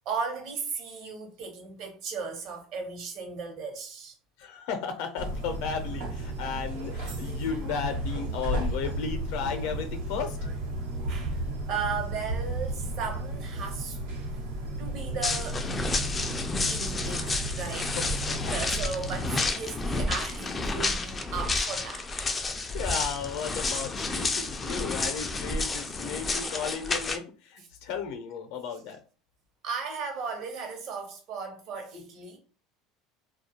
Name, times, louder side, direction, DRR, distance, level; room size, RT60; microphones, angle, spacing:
voice 1, 0.0-4.1 11.1-14.0 14.8-15.6 16.5-22.1 27.6-27.7 29.6-32.4, right 5 dB, 55° right, 0.9 m, -36 dB
voice 2, 4.4-10.4 18.0-18.1 18.4-18.5 22.7-29.0, left 6 dB, 70° left, 0.6 m, -34 dB
sound 1, 5.2-19.4, right 1 dB, 85° right, 0.9 m, -34 dB
sound 2, 15.2-27.2, left 3 dB, 20° left, 0.3 m, -30 dB
2.3 x 2.1 x 2.8 m
supercardioid pair, 135°, 0 cm